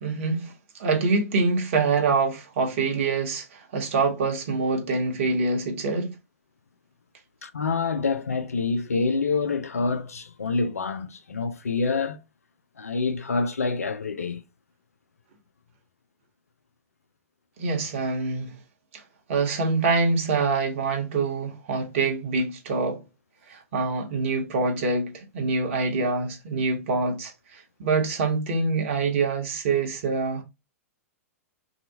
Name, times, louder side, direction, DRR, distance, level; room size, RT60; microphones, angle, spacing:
voice 1, 0.0-6.1 17.6-18.5 18.9-19.0 19.3-23.0 23.5-30.4, right 4 dB, 55° right, 1.0 m, -25 dB
voice 2, 7.4-12.2 12.8-14.4, left 4 dB, 80° left, 0.5 m, -27 dB
2.8 x 2.4 x 4.0 m
figure-of-eight pair, 105°, 8 cm